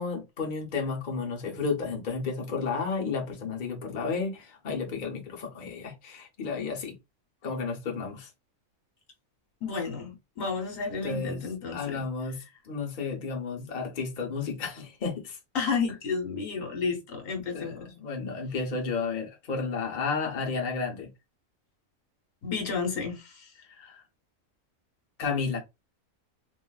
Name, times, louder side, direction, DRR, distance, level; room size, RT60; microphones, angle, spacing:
voice 1, 0.0-7.0 7.4-8.3 11.0-11.4 11.7-15.4 17.5-21.1 23.7-24.0 25.2-25.6, left 4 dB, 45° left, 0.8 m, -32 dB
voice 2, 9.6-12.1 15.5-17.9 22.4-23.5, left 5 dB, 75° left, 1.3 m, -31 dB
3.0 x 2.5 x 2.3 m
omnidirectional pair, 1.4 m